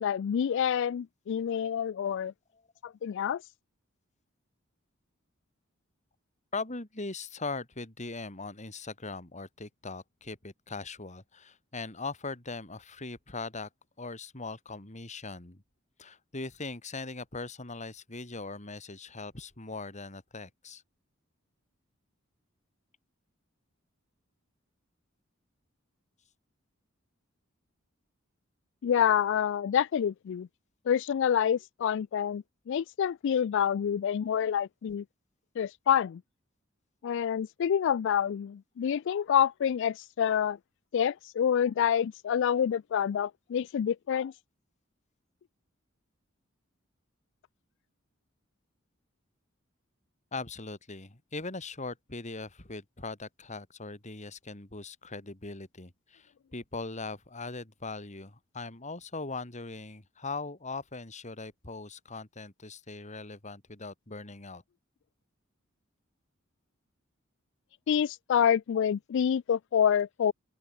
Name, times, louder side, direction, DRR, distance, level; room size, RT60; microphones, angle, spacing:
voice 1, 0.0-2.3 3.0-3.4 28.8-30.5 30.9-35.0 35.6-36.2 37.0-40.6 40.9-44.3 67.9-70.3, left 8 dB, 60° left, 0.3 m, -27 dB
voice 2, 6.5-13.7 14.0-15.6 16.0-20.8 50.3-64.6, left 3 dB, 35° left, 2.7 m, -40 dB
open air
head